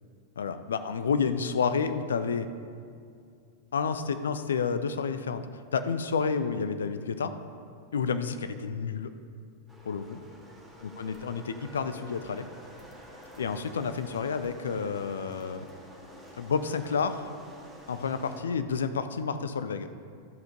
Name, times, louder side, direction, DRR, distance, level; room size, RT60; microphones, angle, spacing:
voice 1, 0.4-2.5 3.7-5.4 5.7-7.3 7.9-9.1 9.9-10.2 11.0-12.5 13.4-15.6 16.4-17.3 17.9-19.9, left 5 dB, 65° left, 10 dB, 0.5 m, -30 dB
sound 1, 9.7-18.4, right 1 dB, 5° right, 2.0 m, -49 dB
12.0 x 5.2 x 5.1 m, 2.3 s
figure-of-eight pair, 90°, 0 cm